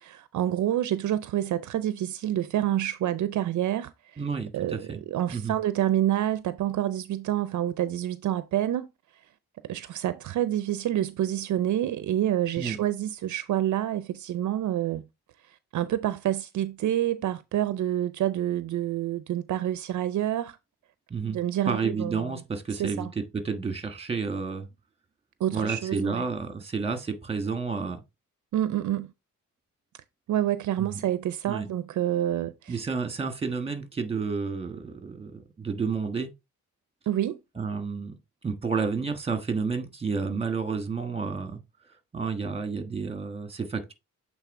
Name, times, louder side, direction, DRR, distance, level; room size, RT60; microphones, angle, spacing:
voice 1, 0.0-4.2 4.5-8.9 9.6-15.0 15.7-20.6 21.3-22.3 22.8-23.1 25.4-26.2 28.5-29.1 30.3-32.8 37.1-37.4, right 12 dB, 65° right, 0.5 m, -28 dB
voice 2, 4.2-5.0 5.3-5.6 12.6-12.8 21.1-21.4 21.7-24.7 25.5-28.0 30.8-31.0 31.5-31.7 32.7-36.3 37.5-38.1 38.4-41.6 42.1-43.9, right 5 dB, 20° right, 1.4 m, -30 dB
8.2 x 3.7 x 3.6 m
cardioid pair, 105°, 31 cm